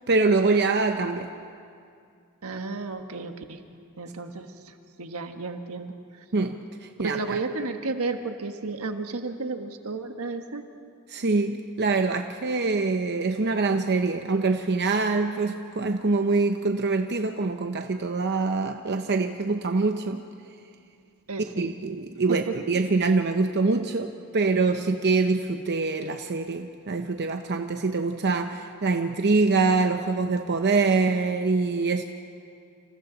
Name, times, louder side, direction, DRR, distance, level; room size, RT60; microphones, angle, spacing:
voice 1, 0.1-1.3 6.3-7.4 11.1-20.2 21.6-32.0, right 3 dB, 50° right, 6 dB, 0.8 m, -24 dB
voice 2, 2.4-3.6 4.0-4.5 5.0-5.9 7.0-10.6 21.3-21.7 22.3-22.6, right 3 dB, 75° right, 6 dB, 1.4 m, -32 dB
28.5 x 27.0 x 4.0 m, 2.4 s
head